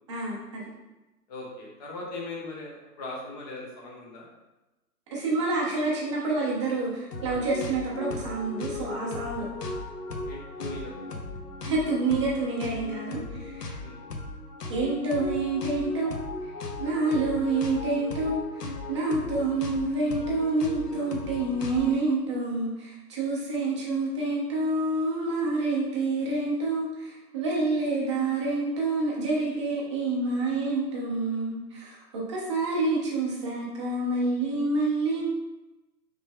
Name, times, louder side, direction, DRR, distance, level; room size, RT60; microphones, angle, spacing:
voice 1, 0.1-0.6 5.1-9.5 11.6-13.7 14.7-16.2 16.4-16.5 16.8-35.3, right 3 dB, 20° right, -4 dB, 0.6 m, -28 dB
voice 2, 1.3-4.3 10.2-11.3 13.8-14.0, left 2 dB, 25° left, -3 dB, 0.9 m, -39 dB
sound 1, 7.1-22.0, left 3 dB, 70° left, 0.9 m, -37 dB
5.2 x 3.3 x 2.3 m, 1.0 s
figure-of-eight pair, 135°, 49 cm